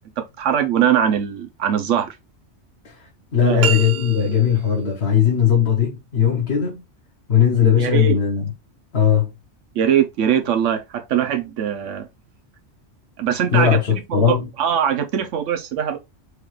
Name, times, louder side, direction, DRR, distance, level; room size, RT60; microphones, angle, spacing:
voice 1, 0.2-2.1 3.4-3.7 7.8-8.2 9.7-12.1 13.2-16.0, right 9 dB, 85° right, 1.1 m, -21 dB
voice 2, 2.8-6.8 7.3-8.5 8.9-9.3 13.5-14.5, left 8 dB, 60° left, 1.3 m, -18 dB
sound 1, 3.6-4.7, right 5 dB, 60° right, 0.9 m, -26 dB
4.7 x 2.4 x 3.2 m
omnidirectional pair, 1.2 m